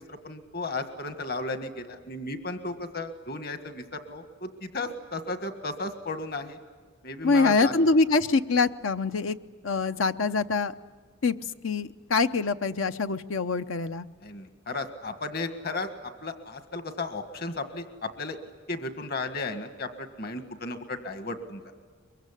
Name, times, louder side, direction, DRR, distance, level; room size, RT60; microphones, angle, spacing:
voice 1, 0.1-6.6 7.0-7.7 14.2-15.9 16.2-18.4 18.7-21.6, left 3 dB, 50° left, 9 dB, 1.7 m, -34 dB
voice 2, 7.2-9.4 9.6-10.7 11.2-11.4 11.6-14.1, left 3 dB, 75° left, 11 dB, 0.8 m, -24 dB
23.5 x 23.0 x 9.9 m, 1.5 s
head